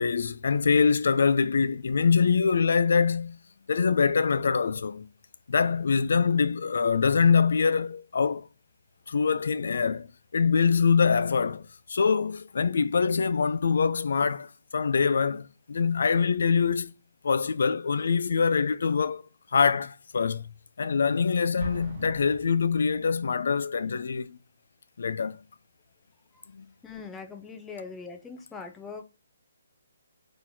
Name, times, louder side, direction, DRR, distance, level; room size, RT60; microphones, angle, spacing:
voice 1, 0.0-3.4 3.7-5.1 5.5-8.5 9.1-10.1 10.3-11.6 11.9-14.5 14.7-16.9 17.2-19.2 19.5-20.5 20.8-24.4 25.0-25.4 26.5-26.7, left 5 dB, 70° left, 0.3 m, -24 dB
Explosion, 21.6-23.4, right 2 dB, 30° right, 1.2 m, -40 dB
voice 2, 26.8-29.0, left 5 dB, 10° left, 0.5 m, -41 dB
3.8 x 3.0 x 2.6 m
hypercardioid pair, 165°, 0 cm